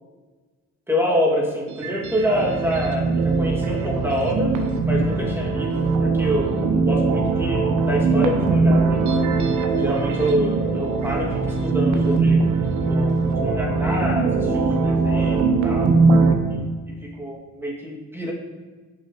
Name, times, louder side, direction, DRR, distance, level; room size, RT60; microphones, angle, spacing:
voice 1, 0.9-4.6 4.9-9.3 9.8-12.4 12.9-15.9 16.5-18.3, equal, 10° right, -3 dB, 2.4 m, -26 dB
sound 1, 1.7-16.3, right 3 dB, 80° right, 1.1 m, -21 dB
6.7 x 5.6 x 5.1 m, 1.4 s
cardioid pair, 90°, 30 cm